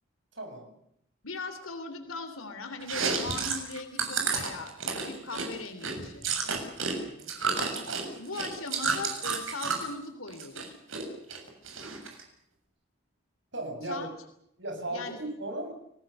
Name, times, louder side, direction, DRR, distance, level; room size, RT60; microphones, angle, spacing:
voice 1, 0.3-0.7 7.0-7.3 13.5-14.1 14.6-15.7, right 1 dB, 60° right, 4 dB, 7.5 m, -36 dB
voice 2, 1.2-6.3 8.2-10.8 13.9-14.1 14.9-15.2, left 3 dB, 90° left, 8 dB, 3.3 m, -39 dB
Chewing mastication, 2.8-6.9 7.2-9.9 10.3-11.0 11.3-12.2, right 5 dB, 80° right, 7.2 m, -31 dB
29.5 x 20.0 x 6.8 m, 0.74 s
head